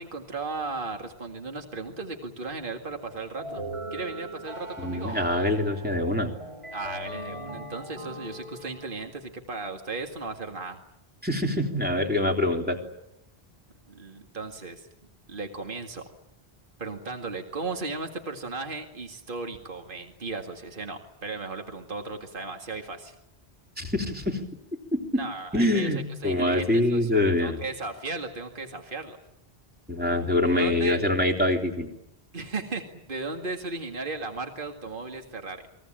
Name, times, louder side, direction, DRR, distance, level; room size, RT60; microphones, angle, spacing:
voice 1, 0.0-3.6 3.9-5.2 6.7-10.8 13.9-14.9 15.3-16.0 16.8-23.2 25.1-25.9 26.2-29.2 30.4-31.1 32.3-35.7, right 3 dB, 55° right, 4 dB, 2.3 m, -36 dB
sound 1, 3.4-9.1, right 1 dB, 30° right, 7.6 m, -39 dB
voice 2, 4.8-6.3 11.2-12.8 23.8-24.4 24.9-25.2 25.5-27.6 29.9-31.9, left 1 dB, 10° right, 1 dB, 3.6 m, -25 dB
29.5 x 21.5 x 8.9 m, 0.84 s
omnidirectional pair, 1.0 m